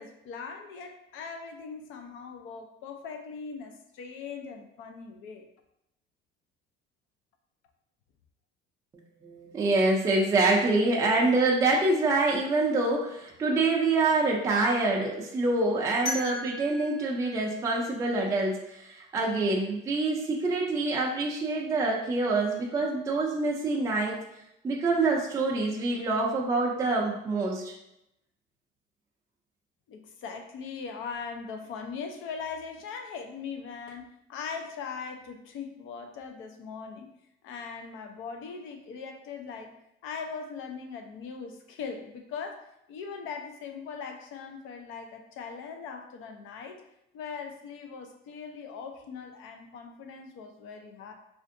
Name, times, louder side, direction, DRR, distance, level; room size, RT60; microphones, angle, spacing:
voice 1, 0.0-5.5 29.9-37.1 37.4-39.7 40.0-46.8 47.1-51.1, left 5 dB, 75° left, 5 dB, 0.5 m, -40 dB
voice 2, 9.2-24.2 24.6-27.7, right 2 dB, 15° right, -2 dB, 0.3 m, -26 dB
sound 1, 16.1-18.9, left 2 dB, 55° left, 1.3 m, -39 dB
4.3 x 2.5 x 2.5 m, 0.83 s
cardioid pair, 175°, 21 cm